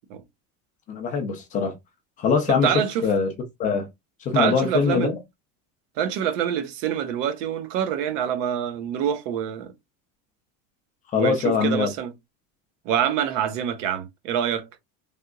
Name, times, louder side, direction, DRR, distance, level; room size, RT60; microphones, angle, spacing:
voice 1, 0.9-1.7 2.2-2.7 3.0-3.3 3.6-3.9 4.2-5.2 11.1-11.9, left 6 dB, 20° left, 0.3 m, -22 dB
voice 2, 2.6-3.0 4.3-5.1 6.0-9.7 11.1-12.1 12.8-14.7, right 9 dB, 75° right, 0.9 m, -26 dB
3.4 x 2.8 x 2.3 m
cardioid pair, 180°, 38 cm